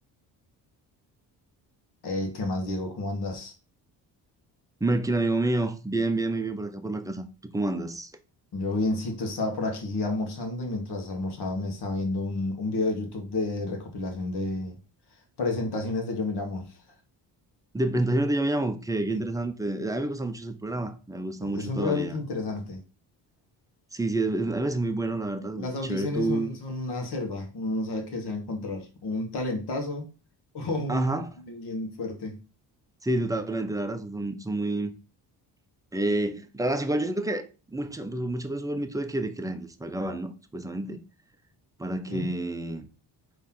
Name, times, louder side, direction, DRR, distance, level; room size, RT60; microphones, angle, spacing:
voice 1, 2.0-3.5 8.5-14.8 15.4-16.8 21.4-22.8 25.6-30.1 30.5-31.1 31.4-32.4 42.1-42.3, left 2 dB, 60° left, 1.5 m, -30 dB
voice 2, 4.8-7.2 7.5-8.1 17.7-22.2 23.9-26.5 30.9-31.3 33.0-34.9 35.9-41.0 41.8-42.9, right 2 dB, 10° right, 0.6 m, -28 dB
4.2 x 3.2 x 3.7 m
cardioid pair, 75°, 45 cm